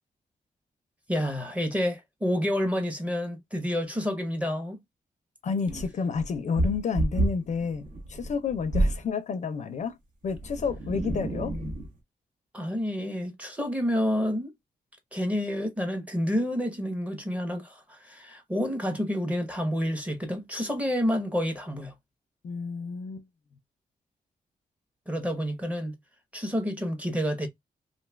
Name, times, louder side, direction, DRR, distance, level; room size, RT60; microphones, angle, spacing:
voice 1, 1.1-4.8 12.5-14.5 15.1-21.9 25.1-25.9 26.3-27.5, equal, 10° right, 0.7 m, -29 dB
voice 2, 5.4-9.9 10.2-11.6 22.4-23.2, left 5 dB, 55° left, 0.4 m, -30 dB
sound 1, 5.7-9.1 10.2-12.0, right 1 dB, 60° right, 0.8 m, -29 dB
2.5 x 2.3 x 3.1 m
wide cardioid pair, 140°, 15 cm